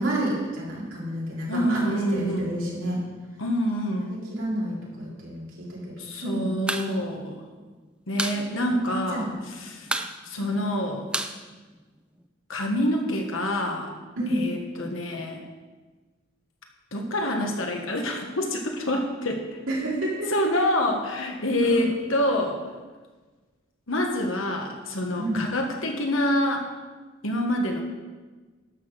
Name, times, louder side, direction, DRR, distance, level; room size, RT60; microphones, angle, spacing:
voice 1, 0.0-3.0 3.9-6.5 6.8-7.0 9.1-9.3 10.4-10.5 14.2-14.5 19.7-20.3 21.6-21.9 25.2-25.5, right 1 dB, 75° right, -6 dB, 4.1 m, -30 dB
voice 2, 1.5-2.5 3.4-4.1 6.0-7.4 8.1-9.3 9.6-9.9 10.3-11.0 12.5-13.9 14.3-15.4 16.9-19.5 20.3-22.6 23.9-26.7 27.2-27.8, left 1 dB, 75° left, 2 dB, 1.7 m, -26 dB
sound 1, 6.5-6.9 7.2-7.3 7.6-8.4 8.7-8.8 9.1-9.5 9.8-12.2, right 1 dB, 5° right, 0.5 m, -30 dB
12.0 x 6.0 x 6.4 m, 1.3 s
head